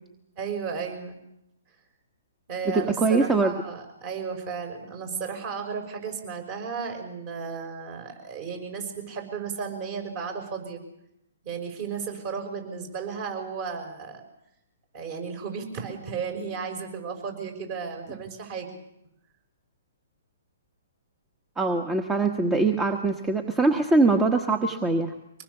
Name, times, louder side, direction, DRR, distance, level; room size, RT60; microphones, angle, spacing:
voice 1, 0.4-1.2 2.5-10.8 11.4-14.2 14.9-18.7, right 6 dB, 40° right, 4 dB, 6.0 m, -34 dB
voice 2, 2.7-3.5 21.6-25.1, right 3 dB, 10° right, 6 dB, 1.3 m, -23 dB
24.5 x 19.5 x 7.0 m, 0.82 s
hypercardioid pair, 135°, 0 cm